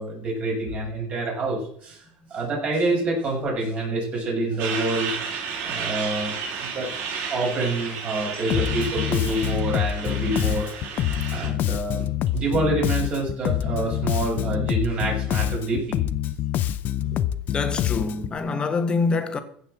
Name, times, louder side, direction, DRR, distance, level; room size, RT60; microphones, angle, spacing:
voice 1, 0.0-2.0 2.3-5.1 5.6-6.3 6.6-6.9 7.3-10.7 11.3-12.1 12.3-16.0 17.1-17.2, right 2 dB, 35° right, 6.6 m, -27 dB
Truck, 4.6-11.5, right 6 dB, 60° right, 5.3 m, -32 dB
Bass guitar, 8.5-18.4, left 12 dB, 45° left, 0.6 m, -26 dB
voice 2, 17.5-19.4, left 4 dB, 20° left, 1.5 m, -25 dB
15.5 x 5.5 x 7.6 m
supercardioid pair, 135°, 4 cm